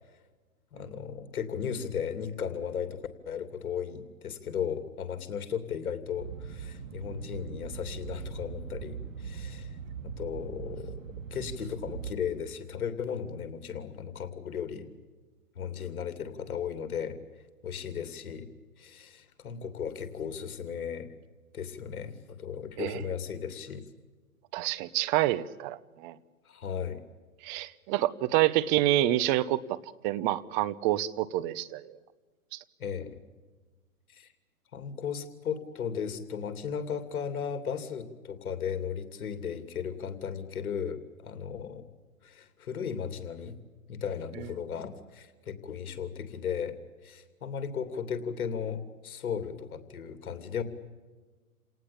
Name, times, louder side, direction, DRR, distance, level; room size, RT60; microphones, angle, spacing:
voice 1, 0.7-9.8 10.0-11.0 11.3-14.9 15.5-17.2 17.6-18.5 18.8-21.1 21.5-23.8 26.4-27.0 32.8-33.1 34.1-34.3 34.7-41.9 42.2-43.6 43.9-46.8 47.0-50.6, left 7 dB, 75° left, 9 dB, 3.0 m, -36 dB
sound 1, 6.2-12.1, right 6 dB, 60° right, 2.2 m, -41 dB
voice 2, 24.5-26.2 27.4-29.8 30.0-32.0 32.5-32.6 44.4-44.5, right 14 dB, 30° right, 16 dB, 1.0 m, -28 dB
29.0 x 19.0 x 8.8 m, 1.3 s
hypercardioid pair, 135°, 44 cm